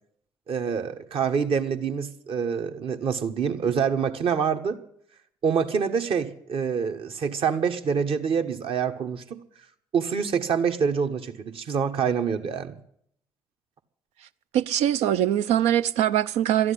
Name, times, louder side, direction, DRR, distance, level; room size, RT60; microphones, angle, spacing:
voice 1, 0.5-4.8 5.4-9.4 9.9-12.8, right 6 dB, 55° right, 1.4 m, -26 dB
voice 2, 14.5-16.7, right 11 dB, 70° right, 0.6 m, -22 dB
13.5 x 11.0 x 9.8 m
hypercardioid pair, 55°, 11 cm